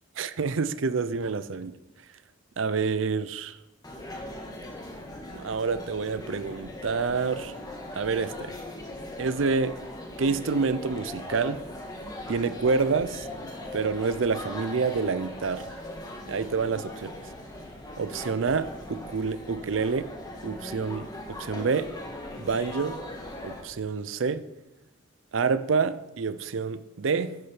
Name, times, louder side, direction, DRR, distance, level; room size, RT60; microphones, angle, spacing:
voice 1, 0.2-1.8 2.6-3.6 5.3-7.5 8.0-8.6 9.2-9.8 10.2-11.6 12.3-13.3 13.7-15.7 16.3-17.1 18.0-20.1 20.4-21.9 22.4-23.0 23.4-24.4 25.3-27.4, right 4 dB, 75° right, 14 dB, 0.5 m, -28 dB
sound 1, 3.8-23.6, left 1 dB, 20° left, 1.7 m, -40 dB
10.5 x 6.3 x 5.9 m, 0.94 s
head